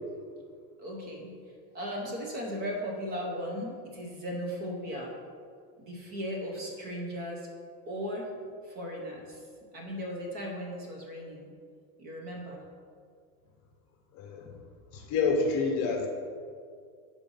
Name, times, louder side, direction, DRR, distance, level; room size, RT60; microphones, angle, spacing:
voice 1, 0.8-1.3 1.7-5.2 5.8-7.5 7.8-8.3 8.6-9.4 9.7-11.5 12.0-12.6, equal, 25° right, 0 dB, 0.7 m, -37 dB
voice 2, 14.1-14.5 14.9-16.1, left 4 dB, 35° left, 2 dB, 0.8 m, -28 dB
5.5 x 4.9 x 5.3 m, 2.2 s
supercardioid pair, 180°, 38 cm